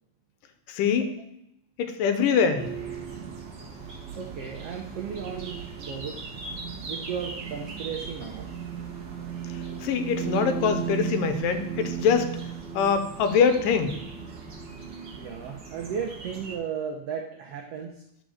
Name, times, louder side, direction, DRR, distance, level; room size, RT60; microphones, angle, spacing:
voice 1, 0.7-1.1 1.8-2.7 9.8-12.3 12.7-14.0, left 6 dB, 80° left, 8 dB, 2.4 m, -23 dB
sound 1, 2.6-16.6, right 7 dB, 60° right, 1.1 m, -36 dB
voice 2, 4.2-6.2 6.9-8.5 15.1-18.0, right 7 dB, 85° right, 2 dB, 1.3 m, -35 dB
10.5 x 5.0 x 6.4 m, 0.80 s
omnidirectional pair, 3.9 m